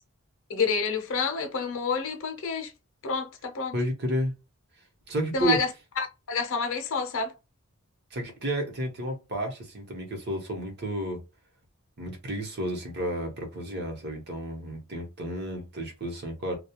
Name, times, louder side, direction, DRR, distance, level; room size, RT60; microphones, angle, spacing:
voice 1, 0.5-2.7 3.0-3.7 5.3-5.7 6.0-7.3, left 5 dB, 60° left, 0.6 m, -28 dB
voice 2, 3.7-4.3 5.1-5.6 8.1-11.2 12.0-16.6, right 1 dB, 50° right, 0.9 m, -31 dB
2.3 x 2.2 x 2.9 m
head